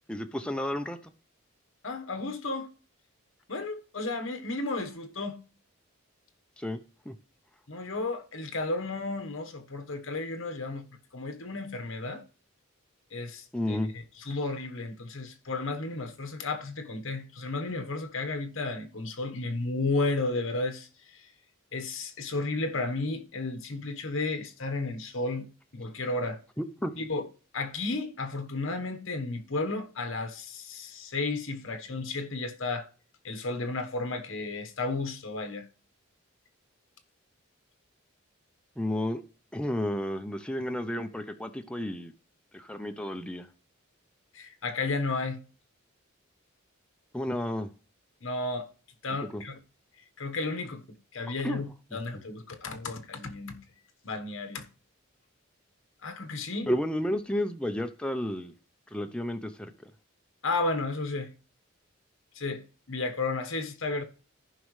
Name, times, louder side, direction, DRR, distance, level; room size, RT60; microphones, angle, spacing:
voice 1, 0.1-1.1 6.6-6.8 7.1-7.2 13.5-13.9 26.6-26.9 38.8-39.2 39.5-42.1 42.5-43.5 47.1-47.7 49.2-49.4 51.4-51.7 52.1-52.2 56.7-58.5 58.9-59.9, left 1 dB, 5° left, 0.6 m, -32 dB
voice 2, 1.8-2.7 3.5-5.4 7.7-10.9 11.1-12.2 13.1-13.8 14.2-20.9 21.7-25.5 25.7-26.4 27.0-27.3 27.5-32.9 33.2-35.6 44.3-45.4 48.2-48.7 49.0-49.6 50.2-53.6 54.0-54.7 56.0-56.7 60.4-61.3 62.3-62.6 62.9-64.0, left 3 dB, 65° left, 1.2 m, -33 dB
14.5 x 5.3 x 3.2 m
head